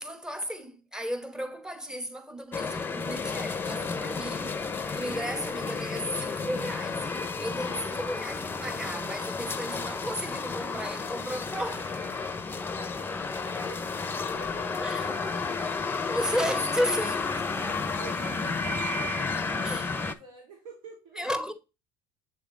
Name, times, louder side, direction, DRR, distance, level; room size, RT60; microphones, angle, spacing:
voice 1, 0.0-11.9 14.8-15.2 15.6-15.8 16.1-17.5 19.6-19.9 21.2-21.5, equal, 5° right, 1.0 m, -34 dB
sound 1, 2.5-20.1, left 4 dB, 20° left, 0.7 m, -32 dB
voice 2, 7.5-8.3 12.9-14.9 18.0-21.2, right 4 dB, 75° right, 3.0 m, -48 dB
8.1 x 3.4 x 3.7 m
supercardioid pair, 95°, 11 cm